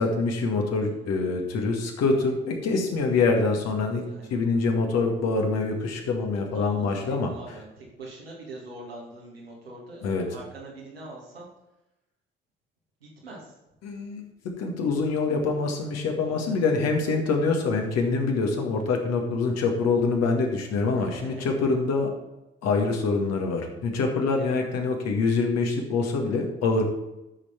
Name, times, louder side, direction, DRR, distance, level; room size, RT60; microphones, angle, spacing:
voice 1, 0.0-4.0 4.3-7.3 10.0-10.2 13.8-14.3 14.6-22.1 22.6-26.8, left 4 dB, 60° left, 2 dB, 1.9 m, -25 dB
voice 2, 0.8-1.4 4.0-4.4 6.5-11.5 13.0-13.5 16.3-16.7 20.9-21.6 24.4-24.6, right 2 dB, 85° right, -4 dB, 2.2 m, -44 dB
12.5 x 6.7 x 4.4 m, 0.94 s
figure-of-eight pair, 45°, 29 cm